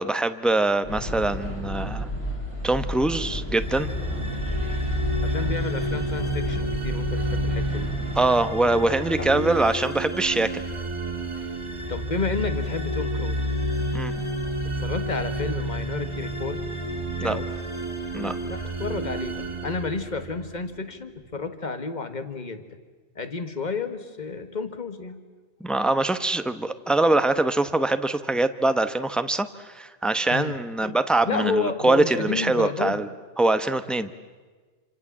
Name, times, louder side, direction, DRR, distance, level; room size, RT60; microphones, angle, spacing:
voice 1, 0.0-2.1 2.6-3.9 8.2-10.6 13.9-14.1 17.2-17.4 18.1-18.4 25.6-33.1 33.4-34.1, right 2 dB, ahead, 10 dB, 0.9 m, -23 dB
sound 1, 0.8-8.2, equal, 50° left, 5.5 m, -32 dB
sound 2, 3.5-20.7, right 1 dB, 25° right, 2.2 m, -30 dB
voice 2, 5.2-7.9 9.2-9.3 11.4-11.5 11.9-13.4 14.8-16.6 17.2-17.5 18.4-22.8 23.2-25.2 30.3-30.5 30.8-31.0 31.2-33.0, left 4 dB, 35° left, 9 dB, 1.8 m, -31 dB
28.0 x 26.0 x 7.4 m, 1.4 s
omnidirectional pair, 1.3 m